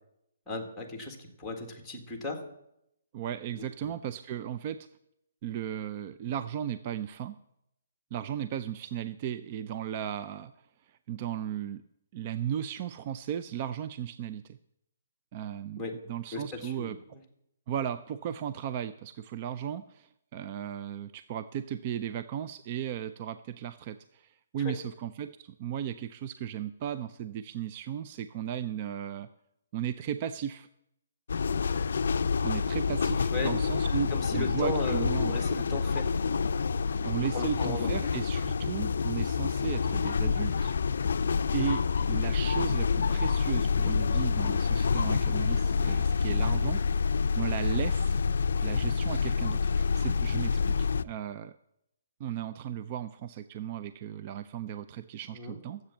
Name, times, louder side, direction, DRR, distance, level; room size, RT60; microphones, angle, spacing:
voice 1, 0.5-2.4 3.6-3.9 15.8-15.9 16.3-17.2 24.6-24.7 33.3-33.5 34.1-36.1 37.3-37.9 55.3-55.6, left 2 dB, 5° left, 2 dB, 1.7 m, -36 dB
voice 2, 3.1-4.9 5.4-7.4 8.1-10.5 11.1-11.8 12.1-14.6 15.3-15.8 16.1-17.0 17.7-29.3 29.7-30.7 32.4-35.4 37.0-40.7 41.5-48.2 48.6-51.6 52.2-55.8, right 9 dB, 30° right, 11 dB, 0.4 m, -36 dB
sound 1, 31.3-51.0, left 5 dB, 70° left, 0.4 m, -27 dB
13.5 x 7.9 x 7.2 m, 0.80 s
hypercardioid pair, 170°, 0 cm